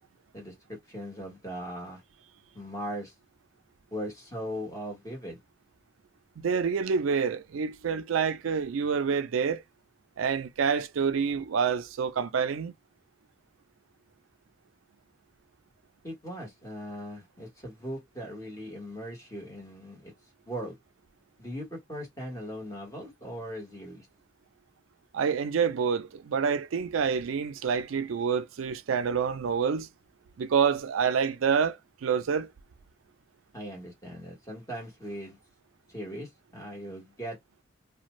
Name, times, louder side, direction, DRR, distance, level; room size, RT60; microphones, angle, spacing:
voice 1, 0.3-2.0 2.5-3.1 3.9-5.4 16.0-20.1 20.5-20.8 21.4-24.1 33.5-35.4 35.9-37.4, equal, 15° left, 1.3 m, -39 dB
voice 2, 6.4-9.6 10.2-12.7 25.1-29.9 30.4-32.5, right 6 dB, 85° right, 0.4 m, -27 dB
2.5 x 2.2 x 3.0 m
head